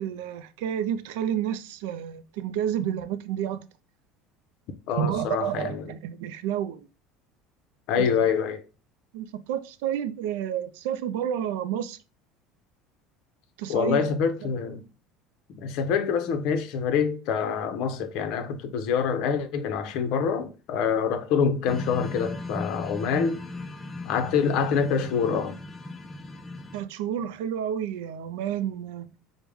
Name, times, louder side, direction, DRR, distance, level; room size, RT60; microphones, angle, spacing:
voice 1, 0.0-3.6 5.0-6.9 8.0-8.1 9.1-12.0 13.6-14.1 14.4-14.5 26.7-29.1, right 9 dB, 85° right, 0.3 m, -30 dB
voice 2, 4.9-5.8 7.9-8.6 13.7-14.8 15.5-23.4 24.1-25.6, left 6 dB, 60° left, 0.6 m, -26 dB
sound 1, 21.7-26.8, left 2 dB, 15° left, 0.4 m, -37 dB
4.7 x 2.1 x 3.4 m
supercardioid pair, 130°, 0 cm